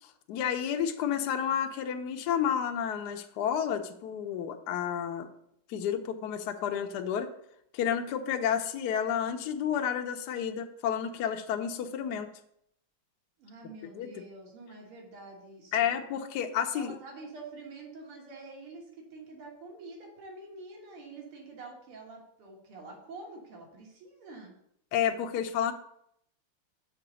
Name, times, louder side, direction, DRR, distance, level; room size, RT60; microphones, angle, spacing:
voice 1, 0.3-5.3 5.7-7.3 7.7-12.3 13.9-14.1 15.7-17.0 24.9-25.7, left 8 dB, 70° left, 6 dB, 1.0 m, -30 dB
voice 2, 13.4-16.0 16.7-24.5, right 3 dB, 85° right, -1 dB, 2.4 m, -47 dB
6.7 x 3.8 x 6.3 m, 0.73 s
omnidirectional pair, 2.3 m